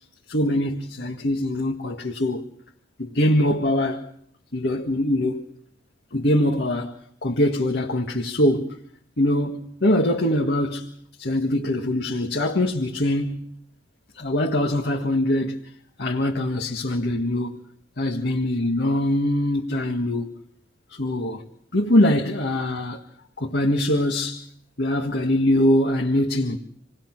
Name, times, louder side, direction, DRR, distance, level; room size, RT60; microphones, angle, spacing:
voice 1, 0.3-2.5 3.0-4.1 4.5-5.4 6.1-8.8 9.2-13.5 14.2-15.6 16.0-17.6 18.0-20.3 20.9-21.4 21.7-23.0 23.4-24.5 24.8-26.6, left 1 dB, 60° left, 1.8 m, -23 dB
28.5 x 19.0 x 6.1 m
head